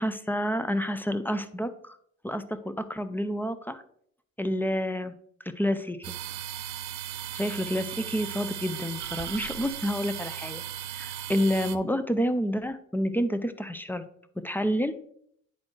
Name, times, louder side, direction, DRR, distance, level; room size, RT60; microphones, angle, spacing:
voice 1, 0.0-2.0 2.2-3.8 4.4-5.1 5.6-6.1 7.3-10.6 10.9-14.0 14.4-14.9, equal, 5° left, 10 dB, 0.4 m, -29 dB
sound 1, 6.0-11.8, right 10 dB, 90° right, 0.5 m, -37 dB
9.7 x 4.1 x 3.2 m, 0.66 s
cardioid pair, 90°, 30 cm